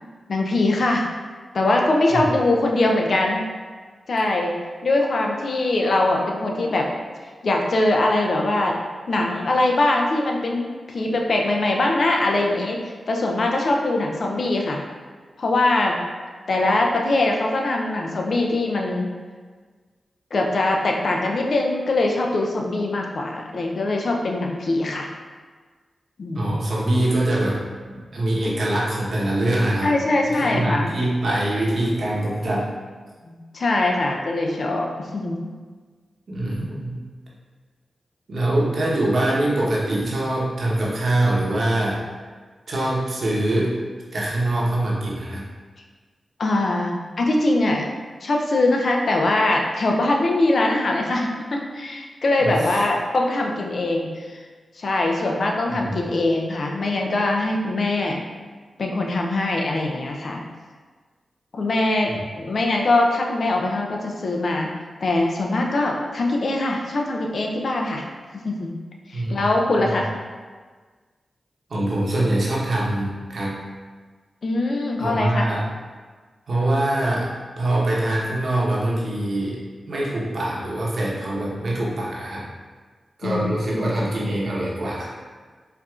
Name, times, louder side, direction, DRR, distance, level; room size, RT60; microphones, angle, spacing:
voice 1, 0.3-1.1 1.5-3.4 4.1-4.6 4.8-6.9 7.4-8.8 9.1-14.8 15.4-16.0 16.5-19.1 20.3-25.1 26.2-26.6 29.8-30.9 33.2-35.4 46.4-47.9 48.2-54.4 54.8-58.2 58.8-60.4 61.5-64.7 65.0-68.0 68.4-68.7 69.1-70.1 74.4-75.4 83.2-84.0, left 2 dB, 65° left, 1 dB, 0.5 m, -22 dB
voice 2, 26.3-27.6 27.9-30.0 30.3-32.7 36.3-37.0 38.3-42.0 42.7-43.7 44.1-45.4 52.4-52.8 55.7-55.9 69.1-69.4 71.7-73.6 75.0-75.6 76.5-77.3 77.6-79.6 79.9-82.4 83.2-85.1, right 1 dB, 70° right, -5 dB, 0.9 m, -23 dB
4.5 x 2.5 x 2.4 m, 1.5 s
cardioid pair, 45°, 0 cm